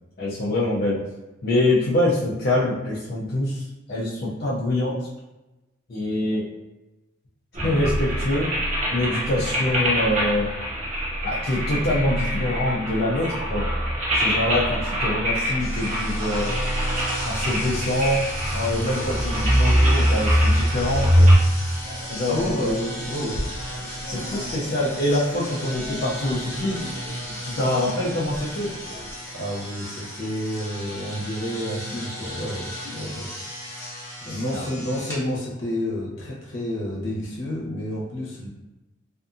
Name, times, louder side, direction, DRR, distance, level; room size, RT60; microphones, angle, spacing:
voice 1, 0.2-1.0 1.4-5.1 5.9-6.5 7.6-8.5 8.9-10.5 11.2-13.7 14.1-16.5 17.2-18.3 18.5-21.3 22.1-22.7 24.0-26.8 27.4-28.7 32.9-33.0 34.3-34.7, left 1 dB, 50° left, -7 dB, 0.5 m, -25 dB
sound 1, 7.5-21.4, equal, 35° right, 0.7 m, -23 dB
sound 2, 15.6-35.2, equal, 10° left, 0.8 m, -35 dB
sound 3, 21.8-29.1, equal, 80° right, 0.5 m, -39 dB
voice 2, 22.2-23.4 29.3-33.3 34.2-38.5, left 1 dB, 80° left, -4 dB, 0.8 m, -30 dB
2.5 x 2.4 x 2.5 m, 1.0 s
head